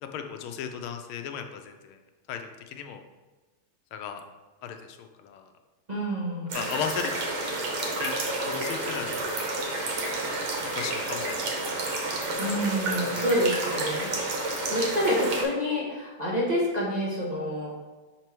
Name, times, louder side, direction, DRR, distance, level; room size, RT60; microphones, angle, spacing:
voice 1, 0.0-2.0 2.3-3.0 3.9-4.2 4.6-5.5 6.5-7.1 8.0-8.1 8.4-9.6 10.6-11.5 12.9-13.2, left 8 dB, 85° left, 6 dB, 1.5 m, -36 dB
voice 2, 5.9-6.6 12.4-17.7, equal, 25° right, -7 dB, 0.9 m, -28 dB
sound 1, 6.5-15.4, right 2 dB, 70° right, 1.9 m, -30 dB
6.0 x 4.4 x 4.5 m, 1.2 s
omnidirectional pair, 2.3 m